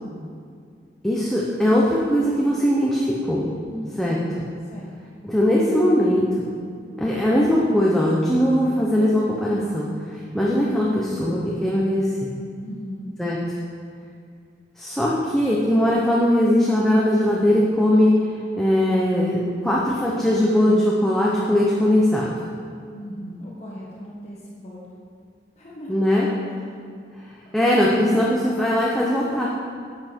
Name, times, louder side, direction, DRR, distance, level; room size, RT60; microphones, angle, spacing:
voice 1, 1.0-3.4 4.0-4.2 5.2-6.2 7.0-9.9 10.3-12.3 13.2-13.4 14.8-19.4 19.6-22.3 25.9-26.3 27.5-29.5, left 1 dB, ahead, -5 dB, 0.9 m, -20 dB
voice 2, 3.7-4.2 4.6-4.9 12.6-13.1 22.9-24.9 25.6-26.6, equal, 40° left, -5 dB, 1.3 m, -38 dB
11.0 x 7.8 x 4.6 m, 2.2 s
head